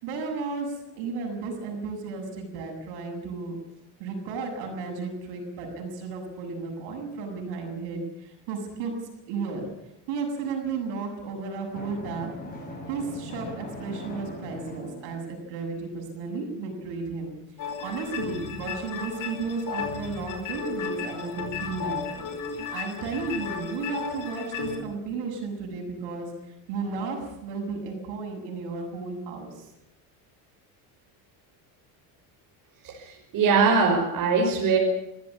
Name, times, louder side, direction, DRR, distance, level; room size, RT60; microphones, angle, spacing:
voice 1, 0.0-3.6 4.0-9.0 9.3-9.7 10.1-12.3 12.9-17.4 17.8-22.3 22.5-26.3 26.7-29.5, right 4 dB, 75° right, 2 dB, 7.5 m, -33 dB
Drum, 11.7-15.5, left 1 dB, 20° left, 7.2 m, -40 dB
sound 1, 17.6-24.8, left 6 dB, 45° left, 4.9 m, -34 dB
voice 2, 32.8-34.8, right 5 dB, 50° right, -1 dB, 5.7 m, -22 dB
24.5 x 15.5 x 8.6 m, 0.83 s
cardioid pair, 140°, 41 cm